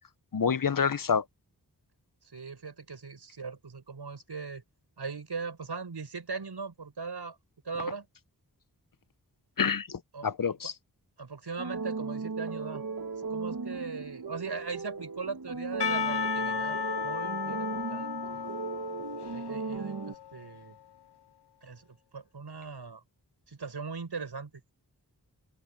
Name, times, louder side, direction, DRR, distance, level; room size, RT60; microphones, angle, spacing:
voice 1, 0.3-1.2 9.6-10.7, left 6 dB, 55° left, 0.9 m, -28 dB
voice 2, 2.3-4.6 5.0-7.4 7.6-8.1 10.1-10.5 11.2-12.8 13.3-18.5 19.3-20.8 21.6-23.0 23.5-24.5, right 4 dB, 85° right, 6.8 m, -39 dB
sound 1, 11.6-20.1, right 4 dB, 60° right, 1.7 m, -36 dB
Percussion / Church bell, 15.8-20.6, left 8 dB, 85° left, 0.8 m, -34 dB
open air
wide cardioid pair, 55°, 39 cm